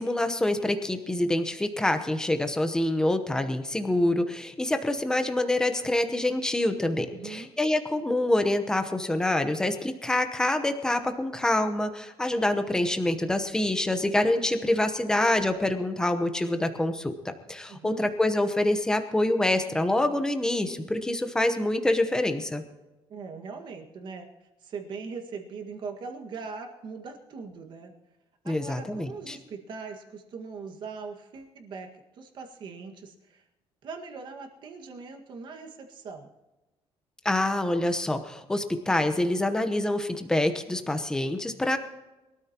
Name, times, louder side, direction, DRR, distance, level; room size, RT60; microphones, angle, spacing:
voice 1, 0.0-22.6 28.5-29.4 37.2-41.8, left 1 dB, 5° left, 7 dB, 0.9 m, -26 dB
voice 2, 7.1-7.5 17.7-18.1 23.1-24.3 24.6-27.9 28.4-33.4 33.8-36.3, right 5 dB, 50° right, 3 dB, 1.8 m, -40 dB
22.5 x 13.0 x 3.0 m, 1.0 s
cardioid pair, 170°, 10 cm